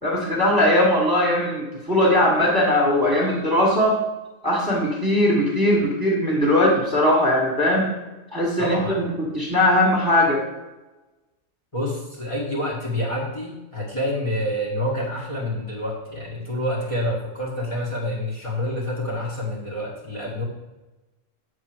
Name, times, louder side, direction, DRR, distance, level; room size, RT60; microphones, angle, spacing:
voice 1, 0.0-4.0 4.4-7.9 8.3-9.1 9.3-10.4, left 1 dB, 15° right, -3 dB, 1.8 m, -20 dB
voice 2, 8.6-9.1 11.7-20.4, left 1 dB, 25° left, -6 dB, 1.6 m, -27 dB
7.7 x 4.8 x 6.3 m, 1.1 s
omnidirectional pair, 1.3 m